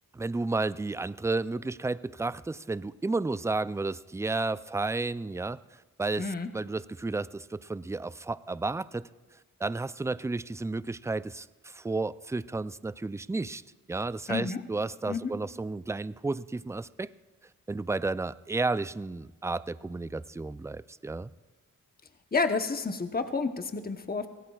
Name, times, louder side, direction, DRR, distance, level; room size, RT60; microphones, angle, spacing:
voice 1, 0.1-5.6 6.0-9.0 9.6-13.6 13.9-17.1 17.7-21.3, right 3 dB, 10° right, 16 dB, 0.3 m, -32 dB
voice 2, 6.2-6.5 14.3-14.6 15.1-15.3 22.3-24.3, left 4 dB, 25° left, 7 dB, 0.9 m, -30 dB
23.5 x 17.0 x 2.4 m, 1.3 s
cardioid pair, 50°, 35 cm